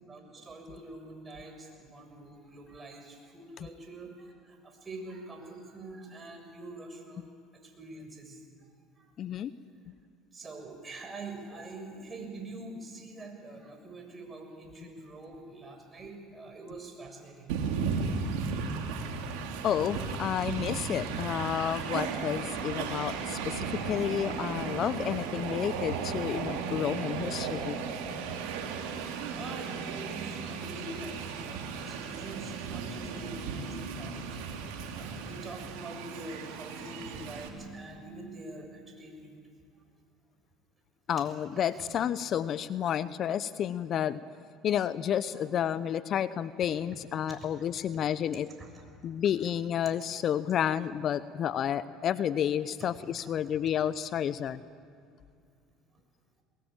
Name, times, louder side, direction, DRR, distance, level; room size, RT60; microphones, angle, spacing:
voice 1, 0.0-7.3 7.6-8.4 9.0-9.1 10.3-17.6 28.8-34.4 34.9-39.4 41.2-41.3 41.8-41.9 45.3-45.5 47.4-47.5 48.6-48.7 53.2-53.3, right 2 dB, 25° right, 3 dB, 6.8 m, -45 dB
voice 2, 9.2-9.5 19.6-27.8 41.1-44.2 44.6-48.5 49.0-54.6, left 9 dB, 50° left, 15 dB, 0.7 m, -31 dB
Train, 17.5-37.5, right 5 dB, 75° right, 2.8 m, -35 dB
21.5 x 21.5 x 9.0 m, 2.4 s
hypercardioid pair, 75°, 0 cm